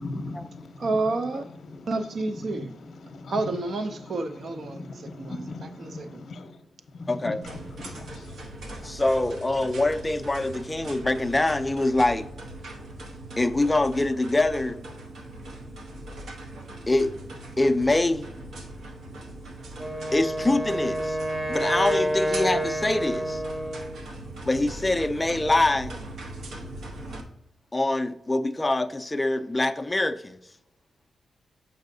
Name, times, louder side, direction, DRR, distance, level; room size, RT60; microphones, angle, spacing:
voice 1, 0.0-0.9 1.7-1.9 2.5-3.3 4.6-6.6 6.9-8.4, left 2 dB, 60° left, 0.7 m, -39 dB
voice 2, 0.8-1.4 1.9-2.7 3.3-6.2, right 3 dB, 55° right, 0.4 m, -30 dB
voice 3, 7.1-7.4 8.8-12.3 13.4-14.8 16.9-17.2 17.6-18.3 20.1-21.2 21.5-23.4 24.4-26.0 27.7-30.4, left 2 dB, 15° left, 0.4 m, -24 dB
sound 1, 7.4-27.2, right 1 dB, 80° right, 0.8 m, -40 dB
Wind instrument woodwind instrument, 19.8-24.0, equal, 20° right, 0.8 m, -28 dB
7.2 x 5.4 x 2.6 m
wide cardioid pair, 125°, 0 cm